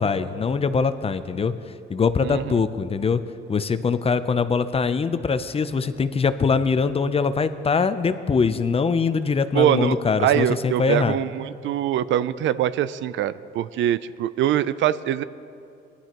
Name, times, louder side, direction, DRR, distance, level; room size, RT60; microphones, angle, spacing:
voice 1, 0.0-1.5 1.9-3.2 3.5-11.2, left 5 dB, 30° left, 12 dB, 0.5 m, -22 dB
voice 2, 2.2-2.5 9.5-15.2, right 11 dB, 70° right, 16 dB, 0.4 m, -23 dB
19.0 x 11.5 x 3.0 m, 2.6 s
cardioid pair, 90°, 20 cm